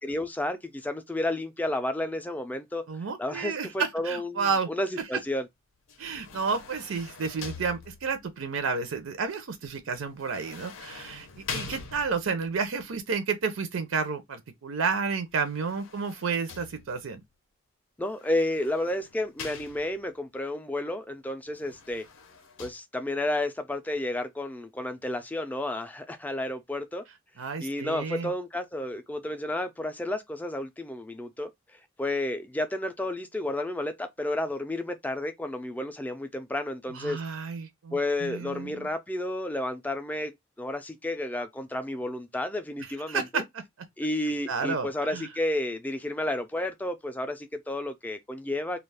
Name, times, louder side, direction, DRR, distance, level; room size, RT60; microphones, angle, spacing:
voice 1, 0.0-2.9 3.2-5.5 18.0-22.1 22.6-27.0 27.6-31.5 32.0-37.2 37.9-43.4 44.0-48.8, left 1 dB, 10° left, 0.3 m, -31 dB
voice 2, 2.9-4.7 6.0-17.2 27.4-28.3 36.9-38.9 42.8-43.4 44.5-45.3, right 5 dB, 85° right, 0.5 m, -31 dB
sound 1, 5.9-8.3 10.2-12.5 15.3-17.2 18.2-20.2 21.5-22.7, left 5 dB, 90° left, 0.6 m, -43 dB
2.4 x 2.3 x 3.2 m
head